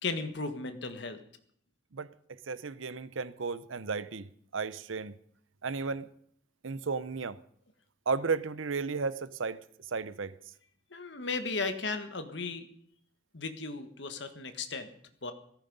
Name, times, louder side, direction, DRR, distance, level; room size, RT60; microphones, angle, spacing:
voice 1, 0.0-1.2 10.9-12.7 13.3-14.9 15.2-15.3, left 3 dB, 65° left, 1.5 m, -35 dB
voice 2, 1.9-5.1 5.6-6.1 6.6-7.4 8.1-9.6 9.9-10.3, right 4 dB, 85° right, 0.7 m, -34 dB
17.0 x 14.5 x 5.4 m
head